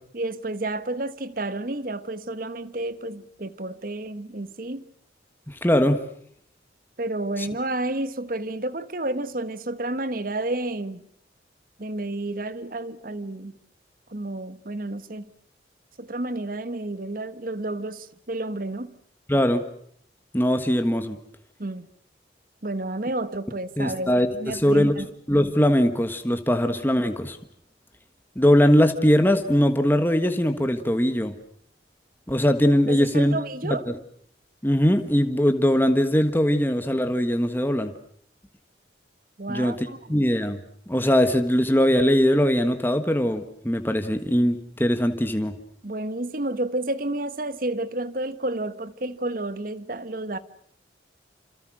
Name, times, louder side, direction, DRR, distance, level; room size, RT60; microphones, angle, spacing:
voice 1, 0.1-4.8 7.0-11.0 11.8-13.5 14.1-15.2 16.0-18.9 21.6-21.9 22.6-25.1 32.9-33.9 39.4-40.0 45.8-50.4, right 2 dB, 50° right, 1.3 m, -30 dB
voice 2, 5.5-6.0 7.4-7.5 19.3-19.6 20.3-21.2 23.8-24.9 25.3-27.4 28.3-31.3 32.3-33.4 33.6-34.0 34.6-37.9 39.5-40.6 40.9-45.5, equal, 10° left, 1.5 m, -21 dB
27.5 x 27.0 x 6.3 m
head